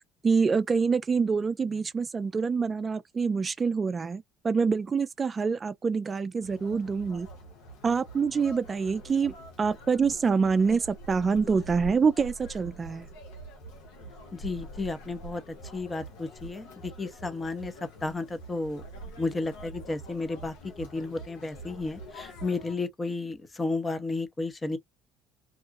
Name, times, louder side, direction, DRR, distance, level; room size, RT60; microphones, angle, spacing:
voice 1, 0.2-7.3 7.8-13.1, right 5 dB, 30° right, 0.3 m, -26 dB
Conversation, 6.4-22.8, right 1 dB, 75° left, 0.8 m, -45 dB
voice 2, 14.3-17.7 18.0-18.8 19.2-24.8, left 3 dB, 25° left, 0.7 m, -33 dB
2.5 x 2.2 x 2.4 m
hypercardioid pair, 65°, 0 cm